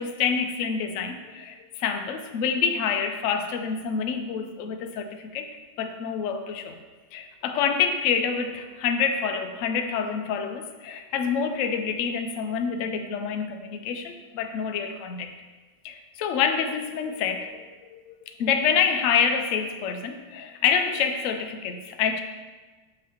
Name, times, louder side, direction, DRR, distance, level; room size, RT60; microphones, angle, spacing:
voice 1, 0.0-5.4 5.8-6.8 7.1-15.3 15.8-17.7 17.9-18.0 18.4-22.2, left 6 dB, 90° left, 5 dB, 0.6 m, -27 dB
6.8 x 3.2 x 5.5 m, 1.3 s
omnidirectional pair, 2.0 m